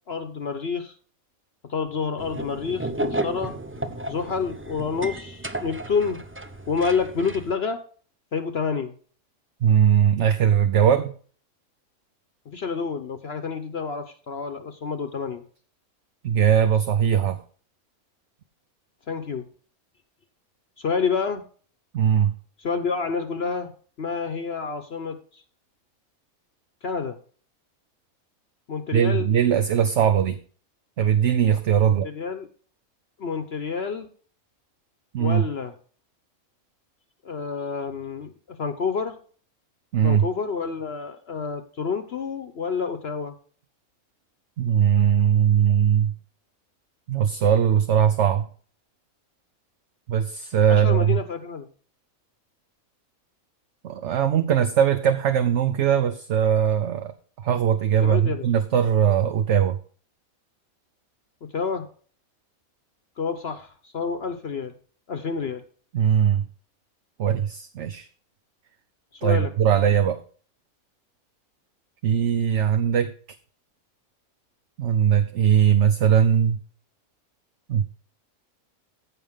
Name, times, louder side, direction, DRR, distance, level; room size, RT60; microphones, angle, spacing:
voice 1, 0.1-0.9 1.7-3.5 4.1-6.2 6.7-7.8 8.3-8.9 12.5-15.4 19.1-19.5 20.8-21.4 22.6-23.7 24.0-25.4 26.8-27.2 28.7-29.3 31.8-32.5 33.2-34.1 35.2-35.7 37.2-39.1 40.0-43.3 50.7-51.7 58.0-58.5 61.4-61.9 63.2-64.7 65.1-65.6 69.1-69.5, left 5 dB, 50° left, 9 dB, 1.0 m, -28 dB
sound 1, 2.2-7.5, right 1 dB, 20° right, 0.4 m, -33 dB
voice 2, 9.6-11.1 16.2-17.4 21.9-22.3 28.9-30.4 31.0-32.1 35.1-35.4 39.9-40.3 44.6-46.1 47.1-48.5 50.1-51.2 53.8-59.8 65.9-66.5 67.2-68.1 69.2-70.2 72.0-73.1 74.8-76.6 77.7-77.8, right 8 dB, 60° right, 10 dB, 0.9 m, -20 dB
15.0 x 5.2 x 3.6 m, 0.43 s
omnidirectional pair, 1.5 m